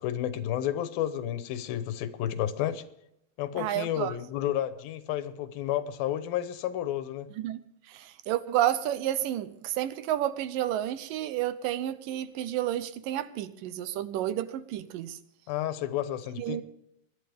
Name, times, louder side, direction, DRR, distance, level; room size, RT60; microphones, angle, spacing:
voice 1, 0.0-2.8 3.4-7.3 15.5-16.6, left 11 dB, 85° left, 2.8 m, -31 dB
voice 2, 3.6-4.1 7.4-7.6 7.9-15.2 16.4-16.6, right 12 dB, 80° right, 2.3 m, -30 dB
23.5 x 11.5 x 3.5 m
omnidirectional pair, 4.1 m